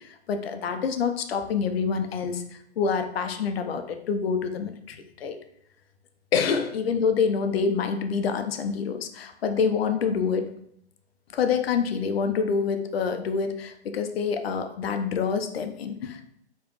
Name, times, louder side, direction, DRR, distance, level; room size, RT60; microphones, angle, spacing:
voice 1, 0.0-5.4 6.3-10.5 11.3-16.2, left 6 dB, 60° left, 7 dB, 0.8 m, -27 dB
4.9 x 3.2 x 3.0 m, 0.68 s
figure-of-eight pair, 120°, 34 cm